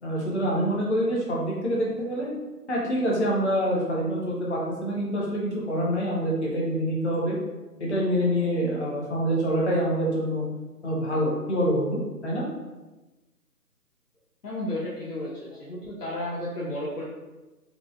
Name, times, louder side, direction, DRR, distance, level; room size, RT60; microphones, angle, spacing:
voice 1, 0.0-2.3 2.7-7.4 7.8-10.5 10.8-12.4, equal, 45° left, -4 dB, 0.9 m, -26 dB
voice 2, 14.4-17.0, left 1 dB, 70° left, -7 dB, 1.0 m, -33 dB
4.8 x 2.2 x 2.5 m, 1.1 s
figure-of-eight pair, 170°, 47 cm